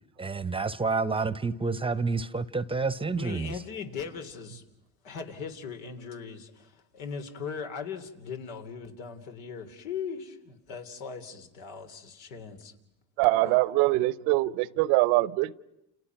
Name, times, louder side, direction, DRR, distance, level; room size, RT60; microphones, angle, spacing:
voice 1, 0.2-3.6, right 4 dB, 15° right, 0.9 m, -29 dB
voice 2, 3.2-4.6 5.0-12.7, left 6 dB, 85° left, 3.3 m, -39 dB
voice 3, 13.2-15.5, right 19 dB, 75° right, 0.9 m, -23 dB
30.0 x 29.0 x 6.0 m
supercardioid pair, 100°, 41 cm